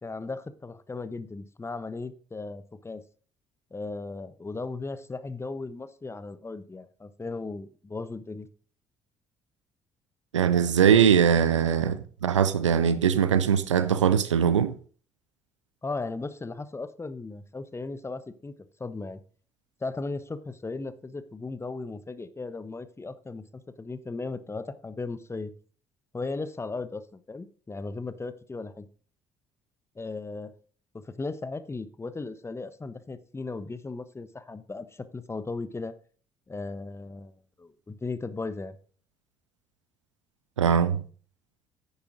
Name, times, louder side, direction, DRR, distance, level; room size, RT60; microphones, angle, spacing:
voice 1, 0.0-3.0 3.7-8.5 15.8-18.5 18.8-19.2 19.8-25.5 26.1-28.9 30.0-30.5 30.9-35.9 36.5-38.8, left 3 dB, 15° left, 1.0 m, -36 dB
voice 2, 10.3-14.7 40.6-41.0, right 8 dB, 80° right, 0.6 m, -21 dB
10.0 x 9.9 x 3.8 m
figure-of-eight pair, 50°, 15 cm